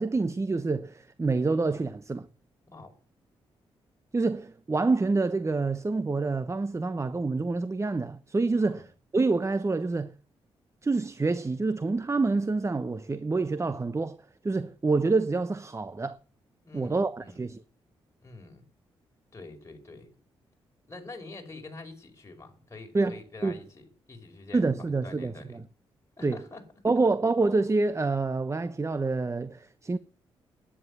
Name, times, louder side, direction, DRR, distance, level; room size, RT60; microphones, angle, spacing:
voice 1, 0.0-2.3 4.1-10.1 10.8-14.2 14.4-16.2 16.7-17.6 22.9-23.6 24.5-25.6 26.2-26.4 26.8-30.0, right 3 dB, 25° right, 0.9 m, -27 dB
voice 2, 16.6-17.4 18.2-18.6 19.3-20.1 20.9-25.6 26.2-26.6 26.9-27.0, left 3 dB, 25° left, 5.3 m, -46 dB
11.0 x 9.9 x 7.1 m
supercardioid pair, 50°, 11 cm